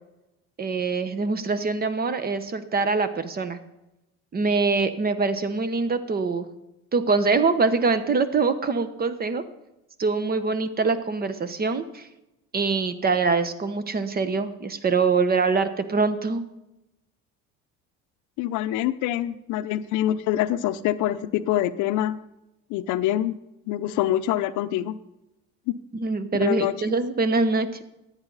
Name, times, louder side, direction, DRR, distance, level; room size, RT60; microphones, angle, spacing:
voice 1, 0.6-3.6 4.3-6.5 6.9-9.4 10.0-12.1 12.5-16.4 25.9-27.8, right 4 dB, 30° right, 12 dB, 1.1 m, -24 dB
voice 2, 18.4-22.2 22.7-23.4 23.7-25.0 25.7-25.8 26.4-26.9, left 13 dB, 70° left, 13 dB, 0.7 m, -25 dB
14.0 x 9.0 x 4.1 m, 0.92 s
supercardioid pair, 100°, 32 cm